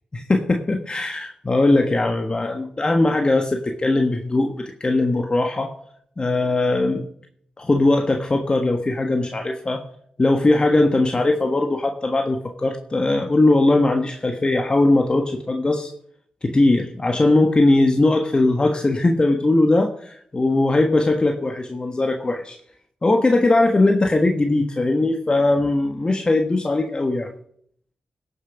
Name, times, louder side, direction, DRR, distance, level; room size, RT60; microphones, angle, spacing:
voice 1, 0.1-5.7 6.2-7.1 7.6-9.8 10.2-15.9 16.4-22.6 23.0-27.3, left 2 dB, 35° left, 4 dB, 1.4 m, -20 dB
17.0 x 7.0 x 5.3 m, 0.67 s
cardioid pair, 55°, 3 cm